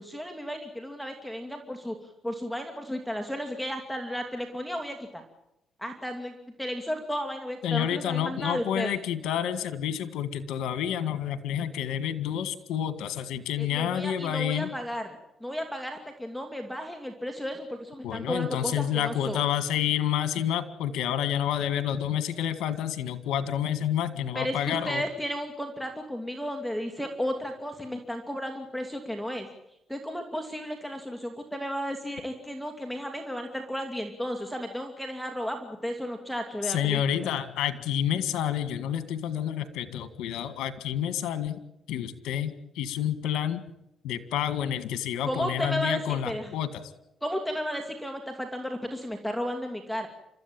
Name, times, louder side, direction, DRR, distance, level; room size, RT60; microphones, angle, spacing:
voice 1, 0.0-2.0 2.2-5.2 5.8-9.0 13.6-19.4 24.3-29.5 29.9-37.3 45.2-46.0 46.2-46.5 47.2-50.1, equal, ahead, 3 dB, 2.6 m, -33 dB
voice 2, 7.6-14.7 18.0-25.0 36.7-41.6 41.9-43.6 44.0-46.7, left 10 dB, 85° left, 12 dB, 1.9 m, -29 dB
30.0 x 14.0 x 8.9 m, 0.84 s
cardioid pair, 90°, 0 cm